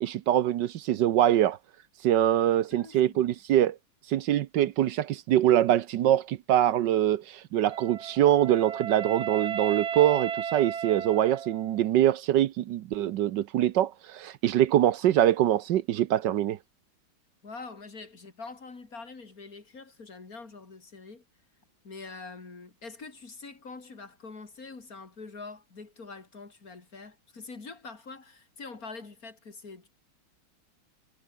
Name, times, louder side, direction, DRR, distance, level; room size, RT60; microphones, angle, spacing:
voice 1, 0.0-1.6 2.0-3.8 4.1-16.6, right 12 dB, 65° right, 1.2 m, -24 dB
voice 2, 2.7-3.2 17.4-21.2 21.8-29.9, left 4 dB, 40° left, 3.4 m, -44 dB
Wind instrument woodwind instrument, 7.7-11.9, right 8 dB, 45° right, 0.9 m, -34 dB
omnidirectional pair, 2.3 m